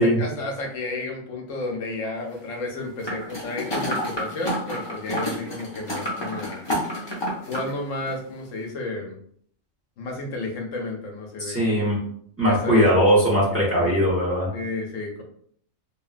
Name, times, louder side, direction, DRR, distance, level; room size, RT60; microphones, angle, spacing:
voice 1, 0.0-6.7 7.5-9.2 10.0-11.6 12.4-13.1 13.8-13.9 14.5-15.2, left 2 dB, 75° left, 1 dB, 1.0 m, -32 dB
sound 1, 3.0-7.7 8.1-8.2, equal, 30° left, 0.5 m, -29 dB
voice 2, 11.4-12.0 12.4-14.5, equal, 10° right, -7 dB, 1.1 m, -20 dB
2.8 x 2.6 x 2.4 m, 0.62 s
omnidirectional pair, 1.4 m